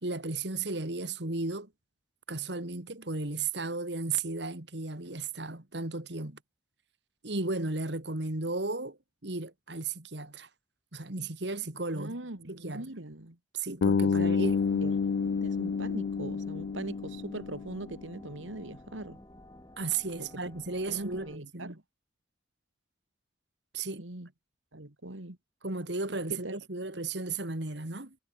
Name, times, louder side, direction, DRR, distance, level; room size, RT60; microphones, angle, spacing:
voice 1, 0.0-1.7 2.3-6.4 7.2-10.5 10.9-12.1 12.5-12.9 13.5-14.8 19.8-21.8 23.7-24.0 25.6-28.2, right 3 dB, 60° right, 2.4 m, -34 dB
voice 2, 11.9-13.4 14.0-14.6 14.8-19.2 20.2-20.5 20.9-21.8 24.0-24.3 24.7-25.4 26.3-26.5, right 1 dB, 85° right, 2.7 m, -41 dB
Bass guitar, 13.8-17.9, left 5 dB, 80° left, 0.4 m, -29 dB
sound 1, 14.4-21.4, left 1 dB, 20° left, 2.2 m, -51 dB
head